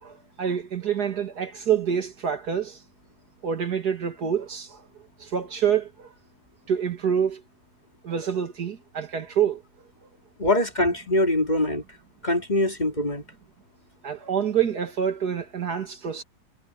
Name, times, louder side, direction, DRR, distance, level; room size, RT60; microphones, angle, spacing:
voice 1, 0.0-2.8 3.4-4.8 5.2-6.1 6.7-7.4 8.0-9.6 14.0-16.2, right 8 dB, 65° right, 2.6 m, -27 dB
voice 2, 10.4-11.8 12.2-13.2, left 1 dB, 25° left, 3.1 m, -23 dB
omnidirectional pair, 1.8 m